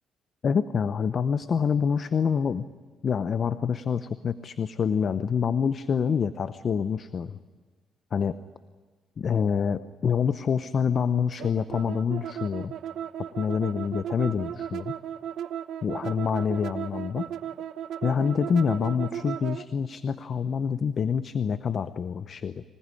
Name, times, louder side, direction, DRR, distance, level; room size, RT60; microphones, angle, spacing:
voice 1, 0.4-2.7 3.0-7.4 8.1-8.4 9.2-12.7 13.4-14.9 15.8-17.3 18.0-22.6, left 6 dB, 50° left, 12 dB, 0.8 m, -26 dB
sound 1, 11.4-19.6, right 10 dB, 75° right, 0.9 m, -35 dB
25.5 x 19.0 x 9.9 m, 1.4 s
cardioid pair, 90°, 0 cm